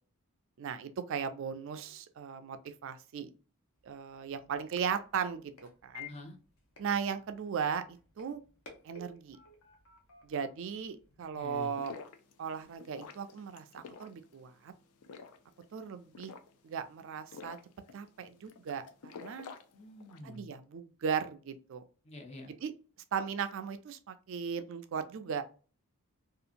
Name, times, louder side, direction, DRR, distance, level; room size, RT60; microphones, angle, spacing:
voice 1, 0.6-3.3 3.8-5.5 5.8-6.1 6.8-8.4 8.8-9.4 10.2-11.9 12.4-14.7 15.7-16.3 16.6-17.6 17.9-19.5 20.2-21.8 22.6-22.7 23.1-25.4, right 7 dB, 60° right, 10 dB, 0.3 m, -37 dB
sound 1, 3.8-11.6, left 5 dB, 70° left, 0.8 m, -55 dB
voice 2, 6.1-6.4 11.4-11.8 19.7-20.5 22.0-22.5, left 2 dB, 30° left, 3 dB, 0.5 m, -47 dB
sound 2, 11.5-20.4, left 5 dB, 90° left, 0.4 m, -51 dB
2.8 x 2.4 x 2.5 m, 0.37 s
head